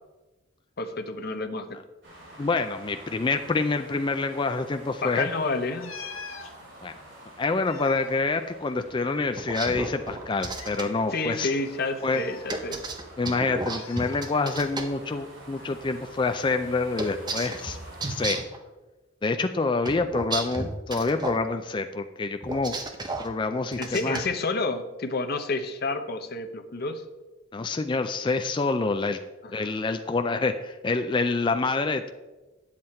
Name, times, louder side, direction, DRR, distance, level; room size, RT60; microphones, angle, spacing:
voice 1, 0.8-1.8 5.0-5.9 11.1-12.8 23.8-27.0 29.4-29.7, left 3 dB, 50° left, 6 dB, 0.8 m, -30 dB
sound 1, 2.0-18.4, right 1 dB, 65° right, 3.0 m, -48 dB
voice 2, 2.4-5.3 6.8-6.9 7.4-11.5 12.0-12.2 13.2-17.8 18.1-18.4 19.2-22.8 23.2-24.2 27.5-29.2 29.5-32.1, left 3 dB, 25° left, 7 dB, 0.3 m, -27 dB
sound 2, 5.8-6.5 7.4-9.1 9.4-9.5 10.3-10.8 12.0-13.0 13.8-14.3 15.6-15.8, left 5 dB, 80° left, 1.0 m, -44 dB
sound 3, 9.4-10.8 12.5-14.8 17.0-18.6 19.8-21.4 22.4-23.3 23.7-24.3, right 2 dB, 20° right, 0.7 m, -32 dB
9.4 x 7.6 x 4.3 m, 1.1 s
head